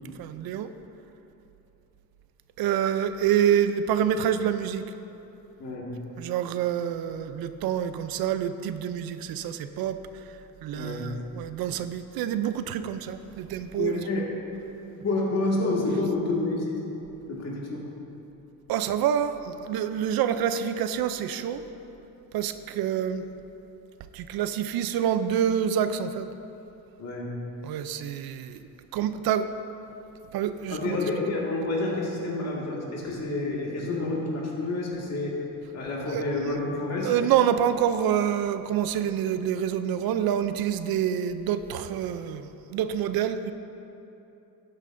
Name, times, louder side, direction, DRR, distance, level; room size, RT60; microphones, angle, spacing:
voice 1, 0.2-0.7 2.6-4.8 6.2-14.0 18.7-21.6 22.3-23.3 24.1-26.3 27.6-28.6 28.9-29.5 30.3-31.0 36.1-36.6 37.0-43.5, right 9 dB, 80° right, 11 dB, 0.5 m, -27 dB
voice 2, 5.6-6.0 10.7-11.1 13.8-14.3 14.9-16.8 17.3-17.9 27.0-27.4 30.7-35.4 35.7-37.1, left 2 dB, 45° left, -3 dB, 1.9 m, -29 dB
12.5 x 9.8 x 2.6 m, 3.0 s
cardioid pair, 135°, 36 cm